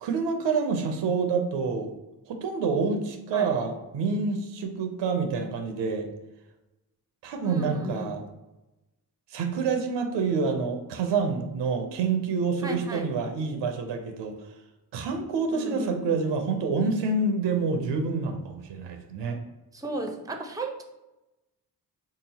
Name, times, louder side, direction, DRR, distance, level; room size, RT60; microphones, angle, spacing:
voice 1, 0.0-1.9 2.3-6.1 7.2-8.2 9.3-14.3 14.9-19.4, right 4 dB, 85° right, 5 dB, 0.6 m, -27 dB
voice 2, 7.4-8.2 12.6-13.1 15.5-16.2 19.7-20.8, right 2 dB, 10° right, 5 dB, 0.5 m, -35 dB
3.6 x 2.8 x 2.7 m, 0.99 s
supercardioid pair, 45°, 42 cm